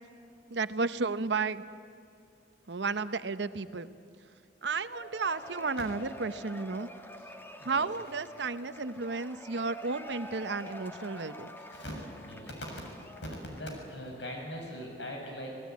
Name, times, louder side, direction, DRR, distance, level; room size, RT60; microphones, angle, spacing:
voice 1, 0.5-1.6 2.7-3.9 4.6-6.9 7.6-11.5, right 4 dB, 75° right, 13 dB, 0.9 m, -33 dB
Cheering / Applause / Crowd, 4.9-13.8, equal, 10° left, 1.4 m, -47 dB
voice 2, 12.2-13.0 13.4-15.5, equal, 85° left, 1 dB, 7.0 m, -41 dB
27.5 x 18.0 x 9.6 m, 2.4 s
head